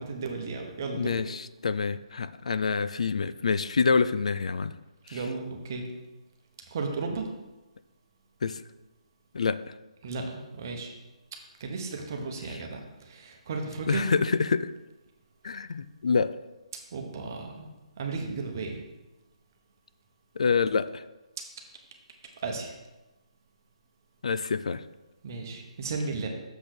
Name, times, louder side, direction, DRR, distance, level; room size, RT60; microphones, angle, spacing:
voice 1, 0.0-1.2 5.1-5.9 6.7-7.3 10.0-10.9 11.6-14.1 16.9-17.7 18.0-18.8 22.4-22.7 25.2-26.3, right 4 dB, 30° right, 3 dB, 0.9 m, -34 dB
voice 2, 0.9-4.7 5.1-5.2 8.4-8.6 9.3-9.6 13.9-14.7 15.4-16.4 20.4-21.0 24.2-24.8, left 5 dB, 65° left, 14 dB, 0.3 m, -26 dB
6.9 x 4.1 x 6.4 m, 1.1 s
hypercardioid pair, 175°, 4 cm